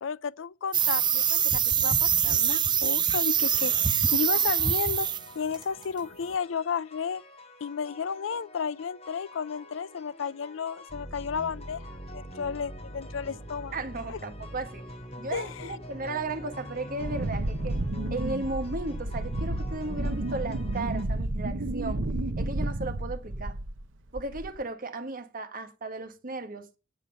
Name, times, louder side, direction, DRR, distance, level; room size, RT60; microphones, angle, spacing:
voice 1, 0.0-5.1 5.3-7.2 7.6-11.9 12.1-13.7 14.1-14.2 15.3-15.7, left 6 dB, 85° left, 0.5 m, -33 dB
sound 1, 0.7-5.3 5.5-5.8, right 8 dB, 25° right, 0.6 m, -24 dB
sound 2, 4.1-21.0, equal, 35° left, 3.9 m, -44 dB
voice 2, 13.7-14.9 15.2-17.8 18.1-22.0 22.4-23.6 24.1-26.7, right 2 dB, 45° right, 1.4 m, -35 dB
Wind, 17.0-23.8 24.1-24.6, right 1 dB, 80° right, 0.8 m, -31 dB
9.1 x 8.3 x 6.8 m
head